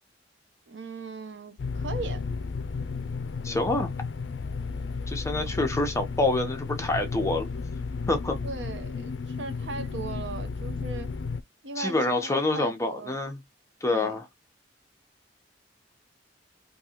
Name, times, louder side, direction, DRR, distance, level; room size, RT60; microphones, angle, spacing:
voice 1, 0.7-2.3 5.5-5.6 8.4-11.2 11.6-13.2 13.9-14.2, right 3 dB, 85° right, 0.9 m, -38 dB
sound 1, 1.6-11.4, left 4 dB, 90° left, 0.4 m, -33 dB
voice 2, 3.4-3.9 5.1-7.5 8.1-8.4 11.8-13.4 13.8-14.3, left 2 dB, 15° left, 0.9 m, -27 dB
3.7 x 2.8 x 2.9 m
head